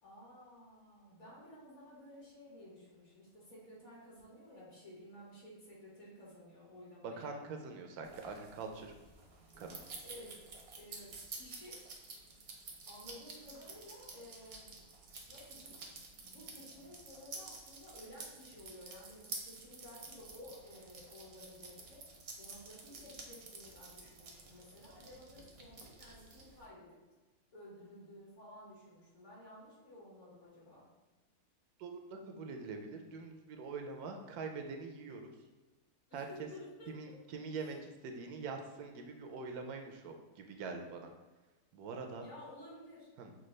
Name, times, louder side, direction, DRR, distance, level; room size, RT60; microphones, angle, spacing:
voice 1, 0.0-7.3 10.0-10.3 10.7-11.8 12.9-14.7 15.3-15.8 16.1-22.0 22.4-27.0 27.5-30.8 36.1-37.1 42.2-43.1, left 1 dB, 50° left, -6 dB, 1.7 m, -54 dB
voice 2, 7.0-8.9 9.6-9.8 31.8-35.3 36.1-36.5 36.9-41.1 41.7-42.3 43.2-43.4, right 4 dB, 80° right, 4 dB, 1.1 m, -44 dB
sound 1, 8.0-26.7, right 3 dB, 55° right, 0.8 m, -51 dB
6.0 x 2.3 x 3.1 m, 1.2 s
omnidirectional pair, 1.6 m